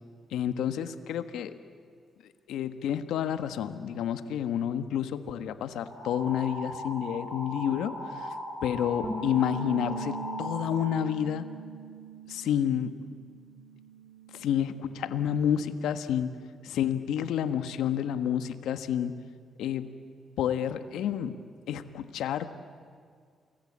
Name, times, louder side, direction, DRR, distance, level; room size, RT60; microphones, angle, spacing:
voice 1, 0.3-1.5 2.5-7.9 8.6-11.4 12.3-12.9 14.3-16.3 16.6-19.1 19.6-19.9 20.4-21.4 21.7-22.5, left 9 dB, 85° left, 10 dB, 1.4 m, -29 dB
sound 1, 5.8-10.9, left 1 dB, 25° right, 7.4 m, -38 dB
Bass guitar, 9.0-15.3, right 2 dB, 5° left, 3.8 m, -41 dB
29.0 x 21.0 x 8.7 m, 2.1 s
cardioid pair, 65°, 0 cm